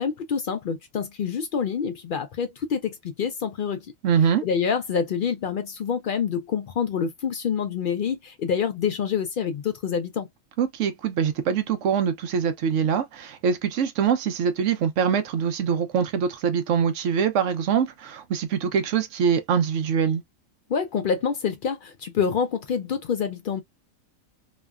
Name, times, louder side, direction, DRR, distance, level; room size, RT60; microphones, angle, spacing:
voice 1, 0.0-3.9 4.4-10.3 20.7-23.6, left 6 dB, 70° left, 0.5 m, -27 dB
voice 2, 4.0-4.4 10.6-20.2, right 7 dB, 70° right, 1.0 m, -24 dB
3.1 x 2.1 x 2.3 m
omnidirectional pair, 1.4 m